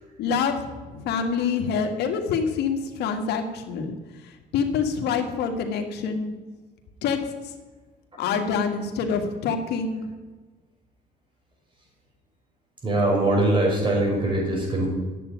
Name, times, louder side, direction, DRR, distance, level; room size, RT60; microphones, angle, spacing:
voice 1, 0.2-0.6 0.9-3.9 4.5-6.3 7.0-7.2 8.2-10.0, left 6 dB, 80° left, 5 dB, 1.8 m, -26 dB
voice 2, 12.8-14.9, right 1 dB, 30° right, -1 dB, 5.6 m, -22 dB
10.5 x 8.0 x 9.4 m, 1.3 s
cardioid pair, 110°, 17 cm